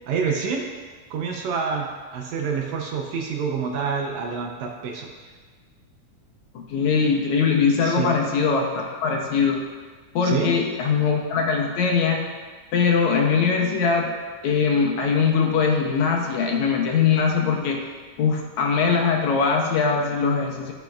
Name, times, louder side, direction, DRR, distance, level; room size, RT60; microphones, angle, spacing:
voice 1, 0.1-0.7 1.1-5.1 7.8-8.1 10.2-10.5, right 5 dB, 75° right, 1 dB, 1.8 m, -27 dB
voice 2, 6.6-9.6 10.2-12.3 12.7-14.1 14.4-17.8 18.2-20.7, left 5 dB, 75° left, 1 dB, 2.0 m, -21 dB
15.0 x 5.2 x 2.3 m, 1.5 s
omnidirectional pair, 3.6 m